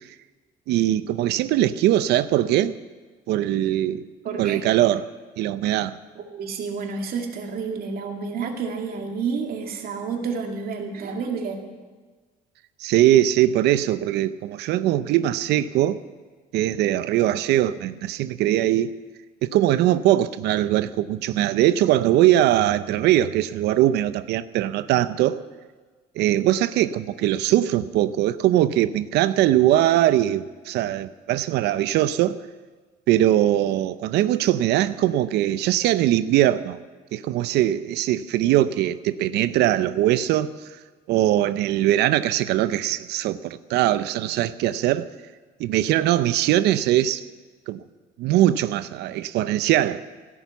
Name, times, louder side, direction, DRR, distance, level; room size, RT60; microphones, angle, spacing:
voice 1, 0.7-2.7 3.3-4.0 4.4-6.0 12.8-16.0 16.5-18.9 19.4-25.4 26.2-32.4 33.1-36.8 37.1-40.5 41.1-45.1 45.6-47.2 47.7-47.8 48.2-50.0, right 13 dB, 80° right, 0.6 m, -21 dB
voice 2, 4.2-4.7 6.2-11.6, right 5 dB, 60° right, 2.4 m, -30 dB
15.0 x 12.5 x 7.0 m
cardioid pair, 110°, 17 cm